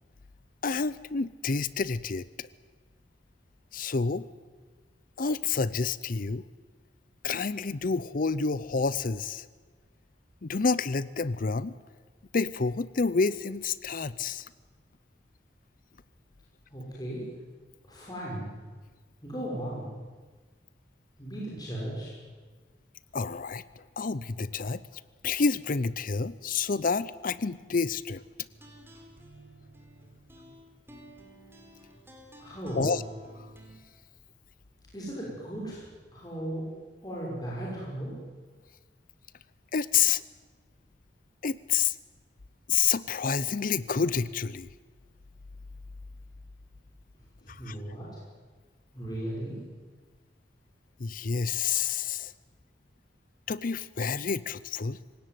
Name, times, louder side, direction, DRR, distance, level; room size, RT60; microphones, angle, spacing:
voice 1, 0.6-2.5 3.7-4.3 5.2-6.4 7.2-9.5 10.4-11.7 12.3-14.5 23.1-24.8 25.2-28.2 32.8-33.0 33.3-33.5 39.7-40.2 41.4-42.0 42.7-44.7 47.5-47.8 51.0-52.3 53.5-55.0, left 5 dB, 50° left, 18 dB, 0.6 m, -29 dB
voice 2, 16.7-17.3 17.8-18.5 19.2-19.9 21.2-22.2 32.4-33.0 34.9-35.9 36.1-36.7 37.0-38.2 47.4-48.2 48.9-49.6, right 1 dB, 20° left, -5 dB, 6.1 m, -36 dB
sound 1, 28.5-33.8, equal, 15° right, 4.5 m, -51 dB
27.0 x 17.5 x 9.4 m, 1.4 s
head